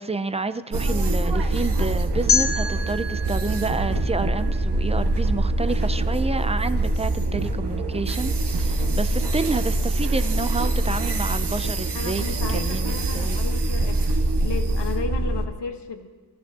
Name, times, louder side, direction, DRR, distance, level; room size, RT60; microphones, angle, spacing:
voice 1, 0.0-12.2 12.5-13.4, right 3 dB, 15° right, 11 dB, 0.4 m, -29 dB
sound 1, 0.7-15.5, right 2 dB, 65° right, 1.2 m, -24 dB
sound 2, 2.3-5.2, left 5 dB, 30° left, 1.1 m, -27 dB
voice 2, 11.9-14.1 14.4-16.1, left 5 dB, 70° left, 5 dB, 1.2 m, -34 dB
22.5 x 13.5 x 2.8 m, 1.4 s
wide cardioid pair, 135°, 43 cm